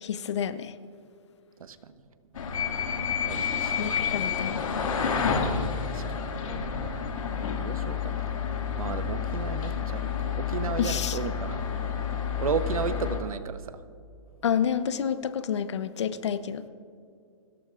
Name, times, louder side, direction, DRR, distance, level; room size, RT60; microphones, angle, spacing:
voice 1, 0.0-0.7 3.8-4.6 10.8-11.2 14.4-16.6, left 8 dB, 55° left, 13 dB, 0.8 m, -29 dB
sound 1, 2.4-13.2, left 7 dB, 75° left, 2.2 m, -29 dB
voice 2, 3.2-3.9 5.9-6.2 7.6-8.3 8.8-11.6 12.4-13.8, right 6 dB, 90° right, 11 dB, 1.0 m, -33 dB
29.0 x 14.0 x 2.5 m, 2.3 s
hypercardioid pair, 170°, 18 cm